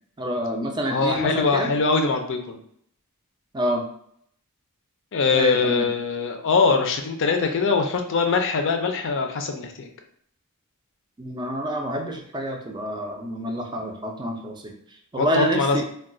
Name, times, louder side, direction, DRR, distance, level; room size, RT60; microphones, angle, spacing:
voice 1, 0.2-1.7 3.5-3.8 5.3-5.9 11.2-15.8, right 1 dB, 20° right, 2 dB, 0.4 m, -27 dB
voice 2, 0.9-2.6 5.1-9.9 15.2-15.8, left 4 dB, 60° left, 5 dB, 0.5 m, -22 dB
2.3 x 2.3 x 3.7 m, 0.66 s
head